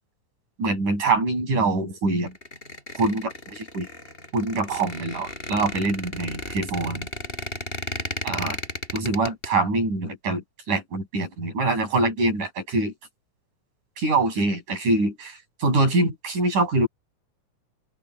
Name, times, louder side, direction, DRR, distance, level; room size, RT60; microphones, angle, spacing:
voice 1, 0.6-2.3 2.9-3.9 4.3-7.1 8.2-8.6 8.9-12.9 14.0-16.9, right 2 dB, 75° right, 9.5 m, -24 dB
Squeak, 2.3-9.5, left 1 dB, 15° left, 6.7 m, -34 dB
open air
omnidirectional pair, 3.6 m